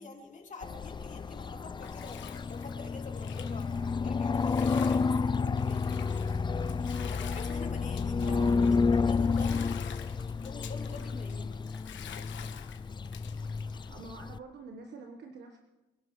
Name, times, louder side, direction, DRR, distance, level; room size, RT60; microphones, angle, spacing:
voice 1, 0.0-5.9 7.0-9.8 10.2-11.7, left 4 dB, 40° left, 2 dB, 2.8 m, -46 dB
Bathtub (filling or washing), 0.6-14.1, left 9 dB, 70° left, 1.2 m, -49 dB
sound 1, 0.6-14.4, left 5 dB, 25° left, 0.4 m, -31 dB
voice 2, 8.2-9.8 13.9-15.6, right 3 dB, 60° right, 3 dB, 1.3 m, -46 dB
27.0 x 11.5 x 3.2 m, 1.1 s
cardioid pair, 90°, 20 cm